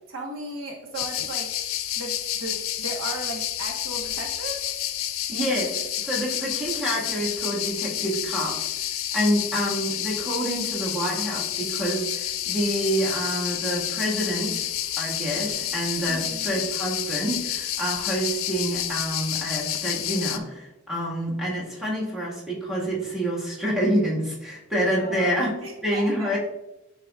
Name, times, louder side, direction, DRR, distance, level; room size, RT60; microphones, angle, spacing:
voice 1, 0.0-1.5 2.0-4.6 16.1-16.5 25.0-26.4, right 2 dB, 70° right, 1 dB, 1.2 m, -36 dB
sound 1, 0.9-20.4, left 12 dB, 85° left, 0.5 m, -29 dB
voice 2, 5.3-8.7 9.1-14.7 15.0-26.4, equal, 5° right, -5 dB, 1.7 m, -27 dB
10.5 x 4.0 x 2.4 m, 0.98 s
head